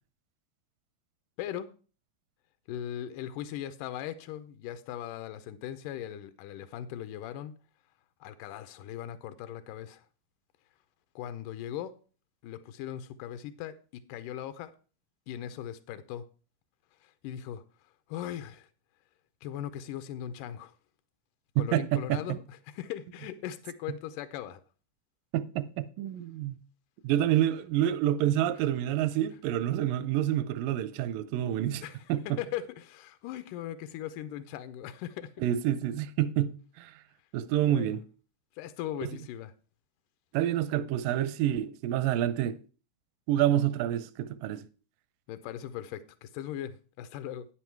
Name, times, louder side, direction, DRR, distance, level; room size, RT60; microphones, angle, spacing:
voice 1, 1.4-1.7 2.7-7.5 8.2-10.1 11.2-11.9 12.4-14.7 15.3-16.2 17.0-17.6 18.1-18.7 19.4-20.7 21.6-24.6 31.8-35.3 37.7-38.0 38.6-39.5 45.3-47.5, left 11 dB, 80° left, 2.3 m, -39 dB
voice 2, 21.6-22.4 25.3-26.6 27.0-32.4 35.4-37.0 37.3-38.0 39.0-39.1 40.3-42.6 43.3-44.7, right 12 dB, 90° right, 2.3 m, -28 dB
10.0 x 7.8 x 4.5 m
omnidirectional pair, 3.8 m